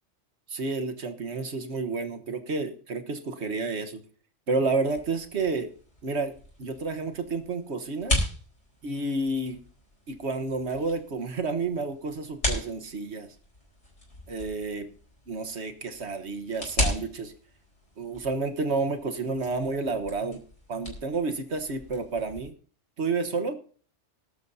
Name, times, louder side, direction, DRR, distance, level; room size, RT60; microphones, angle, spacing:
voice 1, 0.5-4.0 4.5-5.7 6.0-6.3 6.6-8.2 8.8-9.6 10.1-13.3 14.3-14.9 15.3-17.3 18.0-20.4 20.7-22.5 23.0-23.6, right 3 dB, 65° right, 7 dB, 1.5 m, -30 dB
sound 1, 4.9-22.5, left 1 dB, 70° left, 5.0 m, -37 dB
20.0 x 11.5 x 2.7 m, 0.43 s
omnidirectional pair, 1.2 m